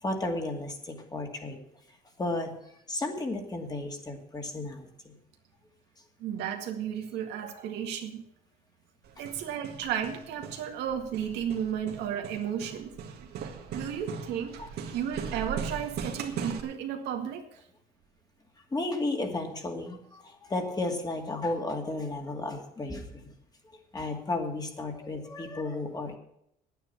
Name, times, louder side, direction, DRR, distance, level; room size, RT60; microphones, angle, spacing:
voice 1, 0.0-1.6 2.2-2.5 2.9-5.1 14.6-14.7 18.7-23.3 23.9-26.2, left 2 dB, 25° left, 3 dB, 2.4 m, -33 dB
voice 2, 6.2-8.2 9.2-12.9 13.7-14.6 14.9-17.6, right 9 dB, 85° right, 4 dB, 1.9 m, -33 dB
Hammer, 9.0-16.6, right 6 dB, 70° right, 1.8 m, -39 dB
9.8 x 9.2 x 8.6 m, 0.74 s
cardioid pair, 110°, 17 cm